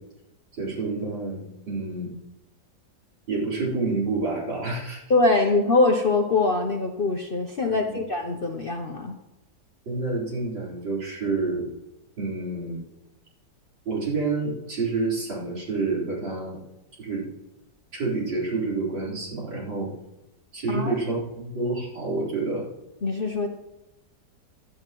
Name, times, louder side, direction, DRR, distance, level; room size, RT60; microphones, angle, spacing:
voice 1, 0.6-2.1 3.3-5.0 5.3-5.4 7.6-7.9 9.9-11.7 12.2-12.8 13.8-16.6 17.0-17.2 17.9-19.9 20.5-22.7, right 3 dB, 85° right, -4 dB, 5.1 m, -28 dB
voice 2, 5.1-9.2 20.7-20.9 23.0-23.5, left 3 dB, 45° left, 2 dB, 0.7 m, -23 dB
16.0 x 12.0 x 3.1 m, 1.0 s
omnidirectional pair, 2.0 m